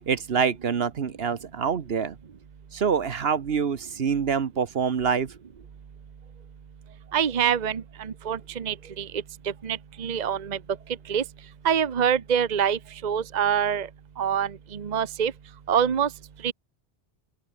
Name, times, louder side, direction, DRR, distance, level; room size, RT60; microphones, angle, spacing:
voice 1, 0.1-2.2 2.7-5.3, right 6 dB, 65° right, 1.3 m, -26 dB
voice 2, 7.1-9.1 9.6-10.6 11.1-11.2 11.6-13.9 14.2-15.3 15.7-16.1 16.4-16.5, right 8 dB, 45° right, 0.9 m, -25 dB
open air
omnidirectional pair, 1.1 m